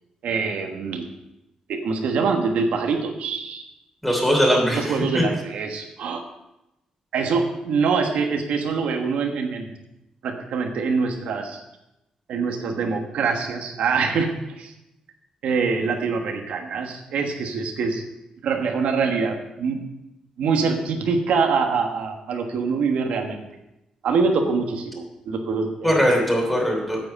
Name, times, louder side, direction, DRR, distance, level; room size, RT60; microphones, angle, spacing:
voice 1, 0.2-1.1 1.7-3.6 4.7-6.2 7.1-9.7 10.2-11.6 12.3-14.3 14.6-14.7 15.4-18.0 18.4-19.8 20.4-23.4 24.0-26.1, right 5 dB, 90° right, 3 dB, 1.3 m, -24 dB
voice 2, 4.0-5.2 25.8-27.0, equal, 5° left, 0 dB, 3.0 m, -20 dB
9.3 x 7.8 x 5.6 m, 0.89 s
cardioid pair, 135°, 2 cm